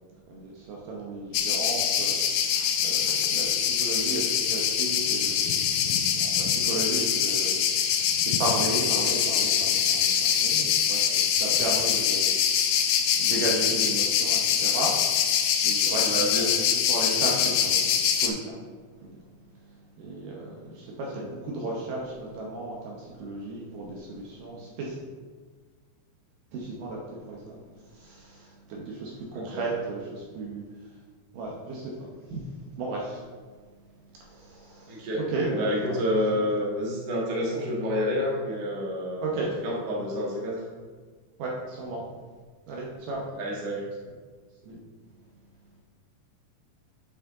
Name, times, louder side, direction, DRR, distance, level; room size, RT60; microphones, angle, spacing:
voice 1, 0.3-15.0 15.3-16.5 16.9-18.6 19.0-19.3 19.6-25.0 26.5-27.0 27.3-31.0 31.3-32.4 32.8-33.2 34.2-35.0 35.3-36.0 36.3-36.5 39.2-39.5 41.4-42.0 42.7-43.2 44.6-44.8, right 2 dB, 70° right, -3 dB, 2.3 m, -35 dB
sound 1, 1.3-18.3, left 8 dB, 80° left, 2.0 m, -24 dB
voice 2, 16.0-16.7 29.3-29.7 34.9-35.2 35.5-40.6 43.3-43.9, equal, 40° right, -5 dB, 1.5 m, -29 dB
8.2 x 6.3 x 3.8 m, 1.5 s
omnidirectional pair, 4.5 m